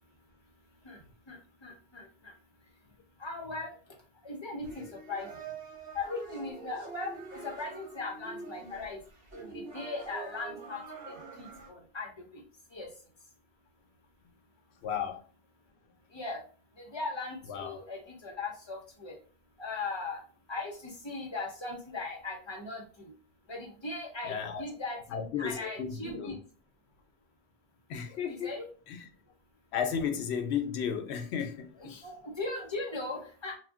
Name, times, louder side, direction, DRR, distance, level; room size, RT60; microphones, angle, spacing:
voice 1, 1.3-2.3 3.2-3.7 4.2-5.3 5.9-9.0 9.3-12.4 12.7-12.9 16.1-16.4 16.8-19.1 19.6-20.2 20.5-23.1 23.5-26.4 28.1-28.7 31.8-33.6, left 3 dB, 30° left, 0.7 m, -39 dB
sound 1, 4.6-11.7, right 4 dB, 60° right, 1.0 m, -45 dB
voice 2, 14.8-15.2 17.5-17.7 24.3-24.6 25.1-26.3 27.9-28.5 29.7-32.1, left 7 dB, 85° left, 0.9 m, -33 dB
2.5 x 2.2 x 3.5 m
omnidirectional pair, 1.1 m